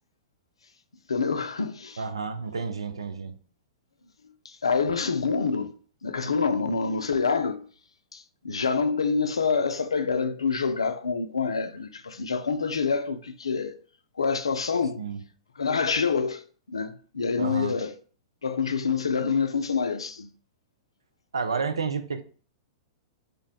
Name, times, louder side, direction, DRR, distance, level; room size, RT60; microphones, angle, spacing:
voice 1, 1.1-2.0 4.4-5.7 6.0-7.7 8.1-13.8 14.2-15.0 15.6-17.9 18.4-20.3, left 5 dB, 85° left, 0.4 m, -27 dB
voice 2, 2.0-3.3 15.0-15.2 17.4-17.8 21.3-22.2, right 5 dB, 85° right, 0.4 m, -30 dB
2.5 x 2.1 x 3.8 m
hypercardioid pair, 110°, 3 cm